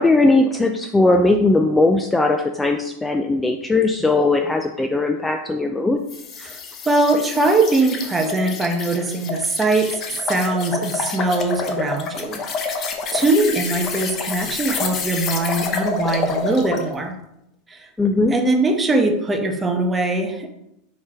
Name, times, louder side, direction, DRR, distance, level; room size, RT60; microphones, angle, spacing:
voice 1, 0.0-6.0 18.0-18.3, left 2 dB, 10° left, 4 dB, 0.5 m, -18 dB
sound 1, 6.1-16.9, left 4 dB, 35° left, 1.0 m, -28 dB
voice 2, 6.8-10.0 10.3-12.4 13.1-17.2 17.7-17.8 18.3-20.5, right 2 dB, 15° right, 4 dB, 1.0 m, -21 dB
5.9 x 4.4 x 4.8 m, 0.82 s
supercardioid pair, 120°, 0 cm